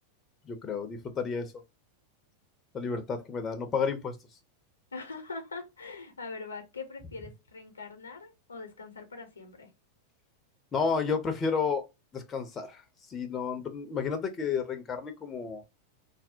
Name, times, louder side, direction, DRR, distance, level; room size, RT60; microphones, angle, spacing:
voice 1, 0.5-1.5 2.7-4.1 10.7-11.8 12.1-12.8 13.1-15.6, left 5 dB, 25° left, 0.5 m, -31 dB
voice 2, 4.9-9.7, left 4 dB, 75° left, 0.6 m, -42 dB
2.6 x 2.0 x 2.5 m
figure-of-eight pair, 90°, 0 cm